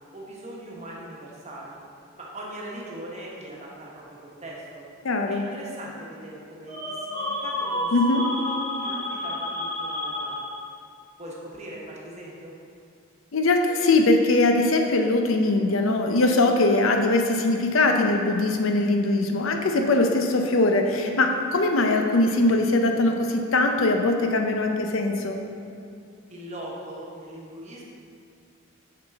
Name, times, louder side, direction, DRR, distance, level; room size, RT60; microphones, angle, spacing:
voice 1, 0.1-1.7 2.2-4.8 5.3-10.6 11.2-12.5 26.3-27.8, right 1 dB, 35° right, -4 dB, 1.1 m, -40 dB
voice 2, 5.0-5.4 7.9-8.2 13.3-25.4, left 2 dB, 70° left, 4 dB, 0.6 m, -21 dB
sound 1, 6.7-10.8, left 1 dB, 20° left, 1.4 m, -30 dB
6.6 x 5.9 x 3.5 m, 2.4 s
head